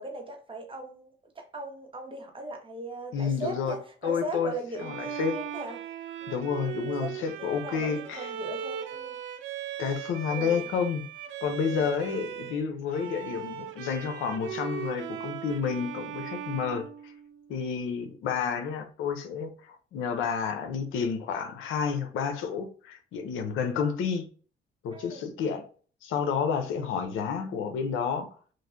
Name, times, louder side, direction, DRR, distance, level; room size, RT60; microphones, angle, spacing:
voice 1, 0.0-5.8 6.2-6.4 7.0-9.2 10.3-10.7 11.5-11.9 24.9-25.2, right 1 dB, 25° right, 1.0 m, -39 dB
voice 2, 3.1-3.7 4.0-4.5 4.8-5.4 6.3-8.3 9.8-11.0 11.4-17.1 17.5-24.3 24.8-25.7 26.0-28.3, left 6 dB, 90° left, 0.6 m, -30 dB
Bowed string instrument, 4.8-12.6 12.9-17.7, right 9 dB, 80° right, 0.5 m, -39 dB
3.1 x 2.5 x 2.6 m
cardioid pair, 90°, 20 cm